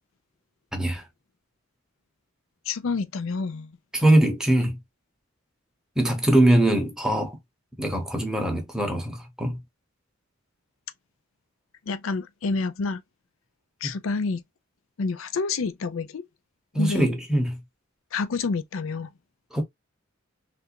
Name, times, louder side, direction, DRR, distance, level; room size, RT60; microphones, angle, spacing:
voice 1, 0.7-1.0 3.9-4.8 6.0-7.4 7.8-9.6 16.7-17.5 19.5-19.6, right 1 dB, 5° right, 0.8 m, -22 dB
voice 2, 2.7-3.7 11.9-13.0 13.8-14.4 15.0-16.2 16.7-17.1 18.1-19.1, left 4 dB, 75° left, 0.5 m, -28 dB
3.3 x 2.6 x 2.8 m
head